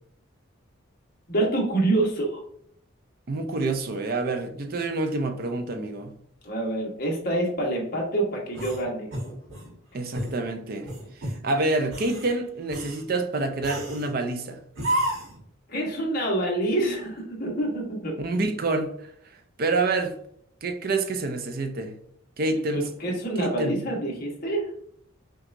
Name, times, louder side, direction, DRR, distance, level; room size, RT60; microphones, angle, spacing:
voice 1, 1.3-2.4 6.4-9.1 15.7-18.2 22.7-24.7, right 2 dB, 45° left, 1.1 m, -26 dB
voice 2, 3.3-6.1 9.9-10.9 11.2-14.6 18.2-18.9 19.6-20.1 20.6-22.0 22.4-22.8 23.4-23.8, right 2 dB, 45° right, 0.4 m, -27 dB
sound 1, 8.5-9.7 10.1-10.4 10.8-11.4 11.8-12.3 12.7-13.0 13.6-14.1 14.7-15.4, right 1 dB, 80° right, 1.4 m, -31 dB
5.8 x 2.3 x 2.5 m
head